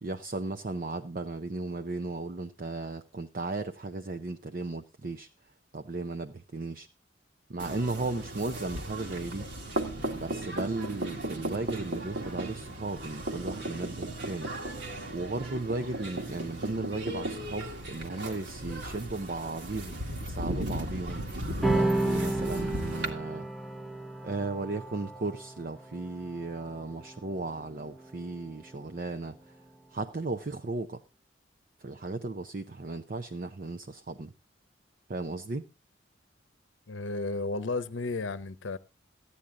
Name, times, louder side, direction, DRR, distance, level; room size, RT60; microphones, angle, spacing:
voice 1, 0.0-5.3 5.7-6.9 7.5-9.5 10.2-14.5 15.1-21.2 21.7-23.5 24.2-29.6 29.9-31.0 31.8-34.3 35.1-35.7, right 3 dB, 45° right, 0.6 m, -35 dB
sound 1, 7.6-23.1, right 1 dB, 70° right, 2.0 m, -36 dB
sound 2, 21.6-28.4, right 2 dB, ahead, 0.7 m, -32 dB
voice 2, 36.9-38.8, left 3 dB, 90° left, 0.8 m, -33 dB
14.5 x 10.0 x 3.7 m
head